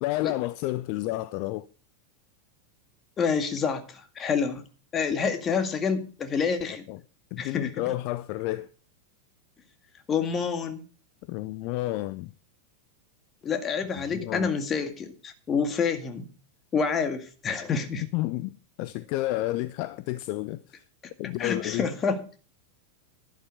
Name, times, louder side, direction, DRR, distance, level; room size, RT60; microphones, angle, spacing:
voice 1, 0.0-1.7 6.9-7.0 7.3-8.7 11.3-12.3 14.0-14.5 18.1-20.8 21.2-21.9, left 17 dB, 45° left, 0.6 m, -31 dB
voice 2, 3.2-4.6 4.9-6.9 7.4-7.7 10.1-10.8 13.4-16.3 16.7-18.0 21.4-22.2, left 6 dB, 25° left, 2.0 m, -28 dB
12.0 x 11.5 x 4.8 m
figure-of-eight pair, 90°, 0 cm